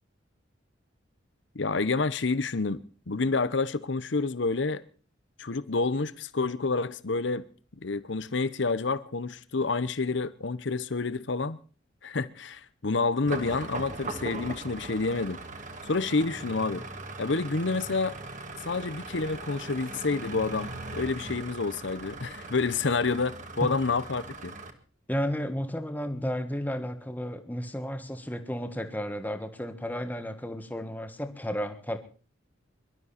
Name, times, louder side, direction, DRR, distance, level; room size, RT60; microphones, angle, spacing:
voice 1, 1.5-4.8 5.4-7.5 7.8-11.6 12.0-15.4 15.9-16.9 17.2-18.2 18.6-24.5, left 3 dB, 70° left, 0.8 m, -29 dB
sound 1, 13.3-24.7, right 2 dB, 40° right, 1.9 m, -40 dB
voice 2, 25.1-32.0, equal, 10° left, 1.5 m, -33 dB
23.5 x 12.5 x 4.2 m
head